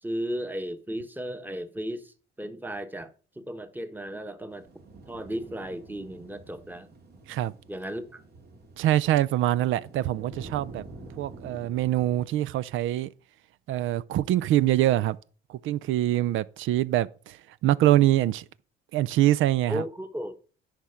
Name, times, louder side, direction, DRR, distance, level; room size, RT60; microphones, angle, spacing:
voice 1, 0.0-3.1 3.4-4.8 5.1-6.9 7.7-8.2 19.7-20.4, equal, 10° right, 1.1 m, -35 dB
sound 1, 4.5-12.2, right 3 dB, 55° right, 2.1 m, -48 dB
voice 2, 8.8-10.8 11.2-13.1 13.7-15.2 15.5-18.4 18.9-19.8, right 14 dB, 80° right, 0.5 m, -24 dB
10.0 x 4.8 x 5.6 m
cardioid pair, 90°, 20 cm